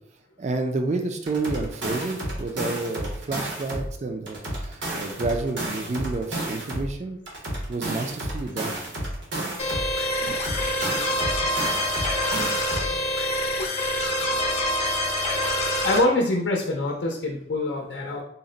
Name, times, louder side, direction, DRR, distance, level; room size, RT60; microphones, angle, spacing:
voice 1, 0.4-7.2 7.7-8.8 10.2-10.8 13.4-13.5, right 3 dB, 40° right, 5 dB, 0.4 m, -30 dB
sound 1, 1.3-3.9 4.3-6.9 7.3-9.9 10.3-12.9, right 1 dB, 85° right, 1.2 m, -31 dB
sound 2, 9.6-16.0, left 1 dB, 35° left, 0.6 m, -26 dB
voice 2, 15.8-18.2, left 2 dB, 80° left, 0 dB, 0.5 m, -24 dB
4.0 x 2.1 x 3.8 m, 0.73 s
head